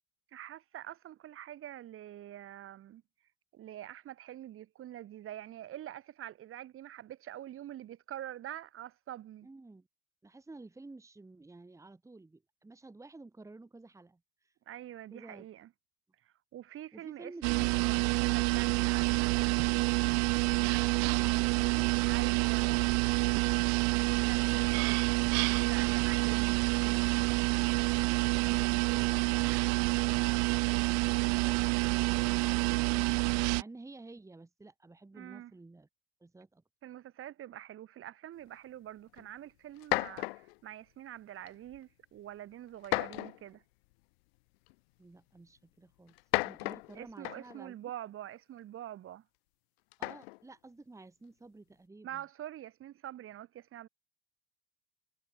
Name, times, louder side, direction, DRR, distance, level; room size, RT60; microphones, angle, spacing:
voice 1, 0.3-3.0 3.5-9.5 14.7-15.7 16.2-19.4 22.0-22.7 24.3-24.5 25.6-26.7 35.1-35.5 36.8-43.6 46.9-49.2 52.0-53.9, right 12 dB, 45° right, 3.0 m, -45 dB
voice 2, 9.4-9.9 10.2-14.5 15.1-15.5 16.9-17.8 20.7-21.9 27.9-35.9 36.2-36.6 45.0-46.1 46.4-47.8 50.0-52.2, right 3 dB, 10° right, 2.1 m, -52 dB
sound 1, 17.4-33.6, right 33 dB, 60° right, 0.5 m, -28 dB
sound 2, 39.2-39.3 39.8-40.6 41.5-41.8 42.8-43.5 44.7-44.8 46.1-47.6 49.9-50.4, left 24 dB, 80° left, 0.7 m, -34 dB
supercardioid pair, 100°, 30 cm